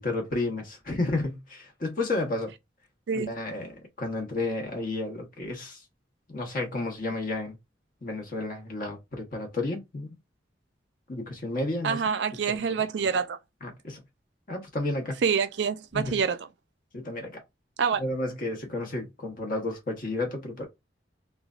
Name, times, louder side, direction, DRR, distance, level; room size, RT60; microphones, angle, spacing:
voice 1, 0.0-2.5 3.1-5.8 6.3-7.6 8.0-10.1 11.1-12.0 12.5-12.8 13.6-14.0 14.5-15.2 15.9-16.2 16.9-17.4 18.0-20.7, left 2 dB, 50° left, 1.0 m, -32 dB
voice 2, 11.8-13.4 15.2-16.4 17.8-18.0, right 6 dB, 75° right, 0.4 m, -26 dB
3.1 x 2.3 x 2.4 m
head